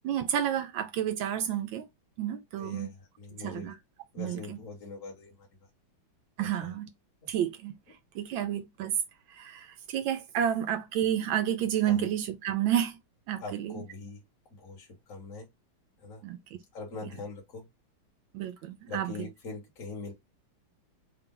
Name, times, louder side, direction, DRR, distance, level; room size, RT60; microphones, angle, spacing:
voice 1, 0.0-1.9 2.2-2.9 3.4-3.7 4.2-4.6 6.4-6.9 7.3-7.7 8.1-9.0 9.3-13.0 13.3-13.8 16.2-16.4 18.3-19.1, right 10 dB, 75° right, 1.3 m, -30 dB
voice 2, 2.6-3.7 4.1-5.5 6.4-6.7 7.2-7.3 11.9-12.1 13.4-14.2 14.5-15.5 16.0-16.2 16.7-17.7 18.9-20.1, left 3 dB, 45° left, 1.8 m, -42 dB
4.1 x 2.3 x 3.7 m
omnidirectional pair, 2.3 m